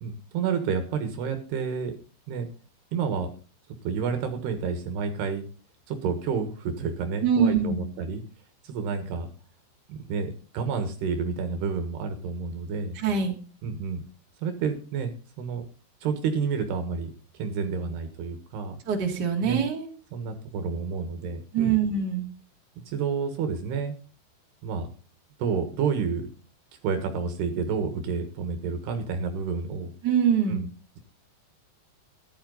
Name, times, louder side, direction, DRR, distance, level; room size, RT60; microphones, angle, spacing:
voice 1, 0.0-1.9 2.3-2.5 2.9-3.3 3.8-5.4 5.9-8.2 8.6-9.3 9.9-13.0 13.6-14.0 14.4-15.6 16.0-17.1 17.4-18.8 19.4-19.6 20.1-21.8 22.9-24.0 24.6-24.9 25.4-26.3 26.8-29.9 30.5-30.7, right 5 dB, 70° right, 7 dB, 3.4 m, -29 dB
voice 2, 7.2-7.8 12.9-13.4 18.9-19.9 21.5-22.3 30.0-30.6, right 7 dB, 30° right, 2 dB, 2.5 m, -24 dB
14.0 x 11.5 x 4.0 m, 0.37 s
omnidirectional pair, 5.2 m